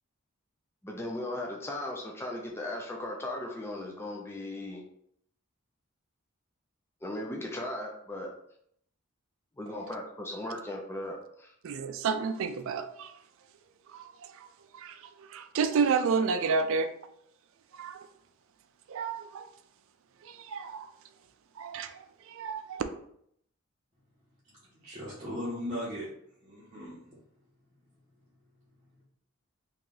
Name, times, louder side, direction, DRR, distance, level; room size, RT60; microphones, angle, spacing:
voice 1, 0.8-4.8 7.0-8.3 9.6-11.5, left 1 dB, 10° left, -1 dB, 0.4 m, -37 dB
voice 2, 11.6-13.1 13.9-14.5 14.7-16.9 17.7-18.1 18.9-19.5 20.2-20.9 21.6-22.8, right 5 dB, 65° right, 9 dB, 0.4 m, -31 dB
voice 3, 24.8-26.1 26.4-26.9, equal, 25° right, -9 dB, 0.9 m, -37 dB
3.0 x 2.9 x 3.7 m, 0.69 s
head